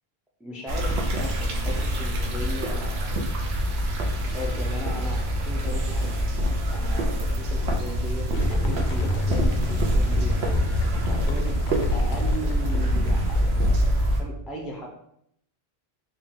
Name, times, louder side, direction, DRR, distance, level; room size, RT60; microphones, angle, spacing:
voice 1, 0.4-3.3 4.2-6.1 6.7-10.6 11.0-11.6 11.9-14.9, equal, ahead, -1 dB, 0.4 m, -37 dB
sound 1, 0.7-14.2, equal, 85° right, 0.9 m, -25 dB
sound 2, 8.3-14.1, equal, 60° left, 0.7 m, -28 dB
3.7 x 2.3 x 3.6 m, 0.72 s
omnidirectional pair, 1.0 m